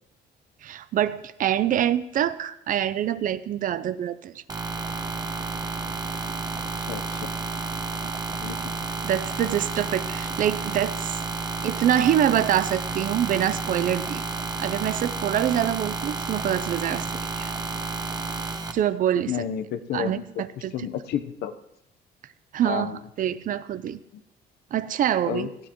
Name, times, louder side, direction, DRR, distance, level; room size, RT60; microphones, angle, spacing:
voice 1, 0.6-4.4 9.0-11.1 11.6-14.2 14.6-17.1 17.4-17.5 18.7-19.3 19.9-20.7 22.5-24.0 24.7-25.5, right 10 dB, 55° right, 15 dB, 0.6 m, -25 dB
sound 1, 4.5-18.7, right 4 dB, 25° right, 1.1 m, -31 dB
voice 2, 6.8-7.3 8.4-8.7 19.3-21.5 22.6-23.0 24.1-24.2 25.2-25.5, left 9 dB, 70° left, 10 dB, 0.9 m, -31 dB
18.0 x 13.0 x 3.1 m, 0.83 s
cardioid pair, 110°, 17 cm